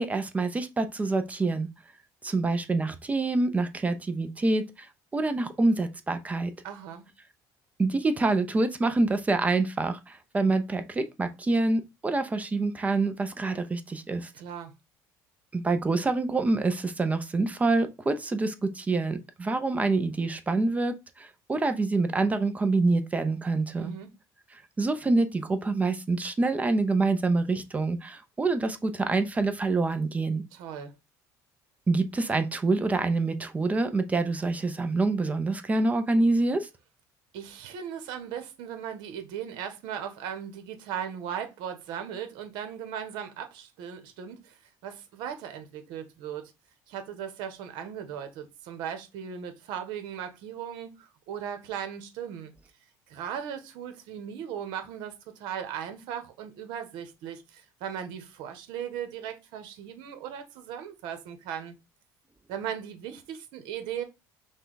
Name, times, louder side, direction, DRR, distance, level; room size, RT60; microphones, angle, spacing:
voice 1, 0.0-1.7 2.2-4.9 5.1-6.5 7.8-14.3 15.5-23.9 24.8-30.4 31.9-36.7, right 3 dB, 20° right, 0.6 m, -26 dB
voice 2, 6.6-7.1 14.3-14.7 23.8-24.1 30.5-30.9 37.3-46.5 46.9-52.5 53.1-61.7 62.5-64.0, right 8 dB, 75° right, 1.1 m, -37 dB
5.4 x 2.3 x 3.9 m
cardioid pair, 115°, 8 cm